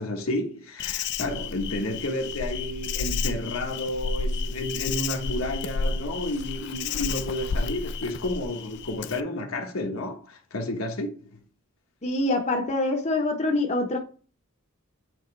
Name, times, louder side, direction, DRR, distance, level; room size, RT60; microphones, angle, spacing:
voice 1, 0.0-11.4, left 1 dB, 70° left, 1.2 m, -31 dB
Insect, 0.8-9.2, left 4 dB, 50° left, 0.4 m, -31 dB
voice 2, 12.0-14.0, left 2 dB, 30° left, 0.8 m, -25 dB
8.1 x 3.8 x 3.2 m
head